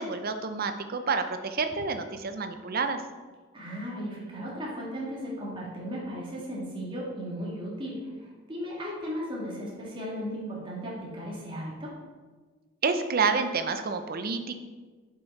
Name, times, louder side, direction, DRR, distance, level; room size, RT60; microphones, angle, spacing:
voice 1, 0.0-3.0 12.8-14.6, right 4 dB, 45° right, 8 dB, 0.6 m, -29 dB
voice 2, 3.5-11.9, equal, 25° right, -5 dB, 1.8 m, -36 dB
7.0 x 5.7 x 4.1 m, 1.4 s
head